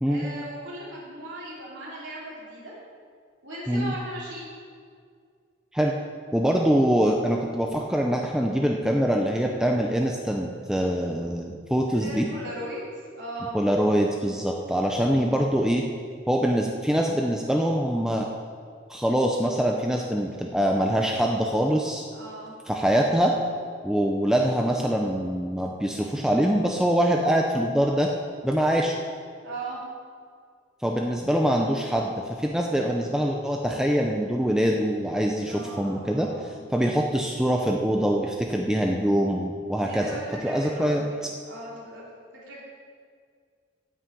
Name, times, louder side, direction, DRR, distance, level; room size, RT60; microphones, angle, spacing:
voice 1, 0.1-2.7 3.4-4.4 11.9-13.5 22.1-22.5 29.4-29.8 35.4-36.6 39.8-41.2 41.5-42.0 42.3-42.6, right 1 dB, 70° right, -6 dB, 3.2 m, -38 dB
voice 2, 6.3-12.3 13.5-15.8 16.3-18.3 18.9-22.1 22.7-23.3 23.8-28.1 28.4-28.9 30.8-40.1 40.4-41.0, equal, 5° right, 0 dB, 0.6 m, -24 dB
9.1 x 6.4 x 8.5 m, 2.1 s
head